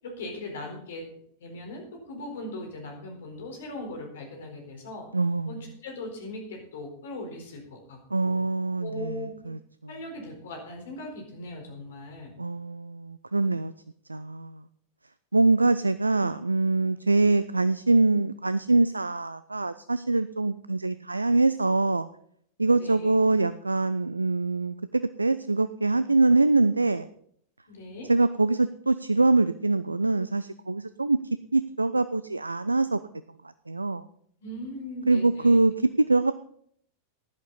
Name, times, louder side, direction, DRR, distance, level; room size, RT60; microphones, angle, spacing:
voice 1, 0.0-1.1 1.4-5.1 5.5-8.0 8.2-8.4 8.8-9.5 9.9-12.3 22.8-23.1 27.7-28.1 34.4-35.6, left 1 dB, 60° left, 3 dB, 4.2 m, -39 dB
voice 2, 5.1-5.6 8.1-9.6 12.4-13.7 14.1-14.6 15.3-22.1 22.6-27.1 28.1-31.2 31.5-33.0 33.7-34.0 35.1-36.3, right 3 dB, 80° right, 14 dB, 0.4 m, -24 dB
15.5 x 11.0 x 4.0 m, 0.66 s
figure-of-eight pair, 90°, 0 cm